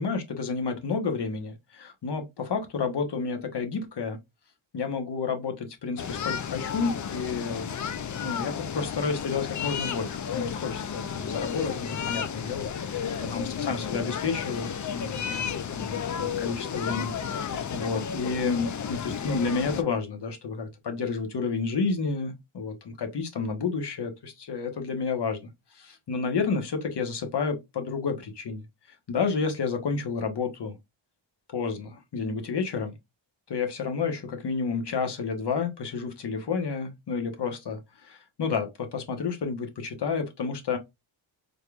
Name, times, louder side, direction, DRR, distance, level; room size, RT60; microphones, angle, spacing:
voice 1, 0.0-4.2 4.7-7.8 8.2-13.0 13.3-25.4 25.7-28.6 29.1-30.8 31.5-33.0 33.5-40.8, left 5 dB, 55° left, 1.2 m, -30 dB
sound 1, 6.0-19.8, left 7 dB, 40° left, 0.5 m, -32 dB
4.1 x 3.4 x 2.4 m
wide cardioid pair, 110°, 48 cm